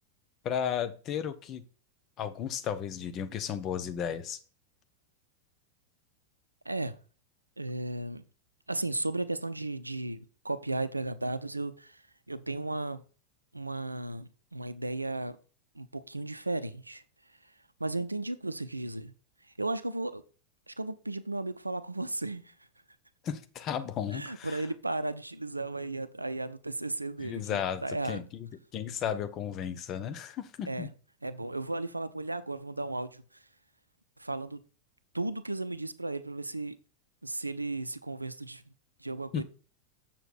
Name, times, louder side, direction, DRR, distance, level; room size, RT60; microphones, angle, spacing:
voice 1, 0.4-1.6 2.2-4.4 23.2-24.6 27.2-27.8 28.1-30.9 39.3-39.4, left 8 dB, 35° left, 1.0 m, -34 dB
voice 2, 6.7-7.0 7.6-8.2 8.7-12.0 12.3-13.0 13.5-15.4 15.8-17.0 17.8-19.1 19.6-20.2 20.7-22.5 24.1-28.2 30.7-30.9 31.2-33.2 34.2-34.6 35.1-36.8 37.2-38.6 39.0-39.4, right 2 dB, 85° right, 0.6 m, -35 dB
7.6 x 6.9 x 4.3 m
figure-of-eight pair, 90°, 0 cm